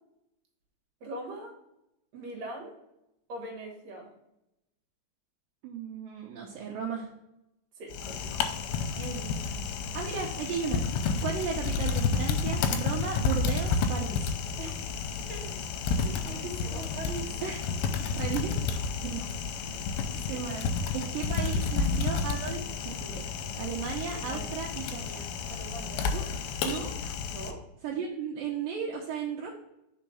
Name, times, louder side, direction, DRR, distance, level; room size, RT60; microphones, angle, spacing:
voice 1, 1.0-1.6 2.1-2.8 3.3-4.1 7.8-8.5 14.6-15.6 15.8-17.4 19.6-20.0 20.3-20.5 24.1-24.5 25.5-26.1 27.3-27.6, right 2 dB, 60° right, 1 dB, 2.0 m, -42 dB
voice 2, 5.6-7.1 9.0-9.4 9.9-14.2 17.4-17.6 18.1-18.5 18.9-19.2 20.3-20.6 20.9-23.2 23.6-25.3 26.1-26.3 26.6-26.9 27.8-29.5, right 7 dB, 75° right, -1 dB, 2.2 m, -35 dB
Typing, 7.9-27.5, left 5 dB, 85° left, 2.4 m, -31 dB
5.0 x 4.6 x 5.6 m, 0.87 s
omnidirectional pair, 4.6 m